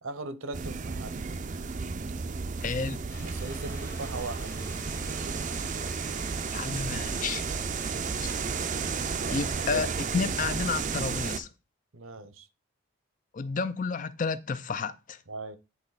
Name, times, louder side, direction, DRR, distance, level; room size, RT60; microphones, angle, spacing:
voice 1, 0.0-1.2 3.2-4.5 9.2-9.9 11.9-12.5 15.3-15.6, right 3 dB, 75° right, 0.9 m, -39 dB
sound 1, 0.5-11.4, right 5 dB, 35° right, 0.5 m, -33 dB
voice 2, 2.6-3.0 6.5-7.5 8.2-8.3 9.3-11.5 13.3-15.2, left 5 dB, 40° left, 0.4 m, -31 dB
sound 2, 3.1-9.7, left 2 dB, 10° left, 0.9 m, -49 dB
9.8 x 4.1 x 4.0 m
head